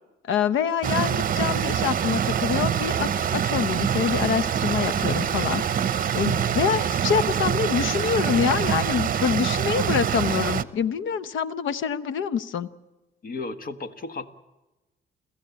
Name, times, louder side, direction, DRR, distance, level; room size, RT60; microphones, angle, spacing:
voice 1, 0.2-5.6 5.9-12.7, left 7 dB, 80° left, 16 dB, 1.0 m, -26 dB
sound 1, 0.8-10.6, right 8 dB, 45° right, 0.8 m, -25 dB
voice 2, 13.2-14.3, left 3 dB, 45° left, 10 dB, 1.7 m, -34 dB
29.5 x 14.5 x 8.5 m, 1.1 s
cardioid pair, 90°, 20 cm